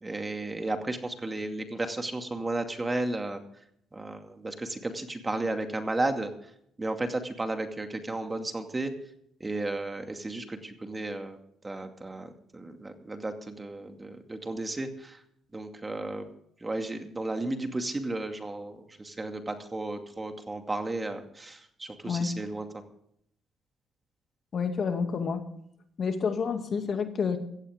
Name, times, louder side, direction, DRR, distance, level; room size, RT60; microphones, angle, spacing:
voice 1, 0.0-3.4 3.9-6.3 6.8-8.9 9.4-11.4 11.6-15.2 15.5-16.3 16.6-22.7, right 2 dB, 20° right, 6 dB, 2.3 m, -33 dB
voice 2, 24.5-25.5 26.0-27.4, left 5 dB, 50° left, 6 dB, 2.4 m, -29 dB
16.5 x 14.5 x 3.7 m, 0.70 s
supercardioid pair, 75°, 0 cm